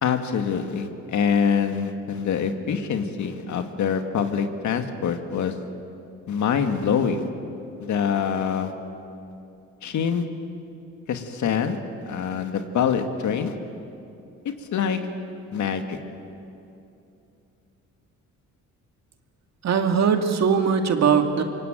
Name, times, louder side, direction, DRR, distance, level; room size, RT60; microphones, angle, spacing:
voice 1, 0.0-5.5 6.3-7.3 7.8-8.7 9.8-10.2 11.1-11.8 12.0-13.6 14.7-15.0 15.5-16.0, left 7 dB, 70° left, 6 dB, 2.1 m, -25 dB
voice 2, 19.6-21.4, right 6 dB, 60° right, 5 dB, 2.5 m, -20 dB
25.5 x 23.5 x 9.1 m, 2.8 s
cardioid pair, 90°, 30 cm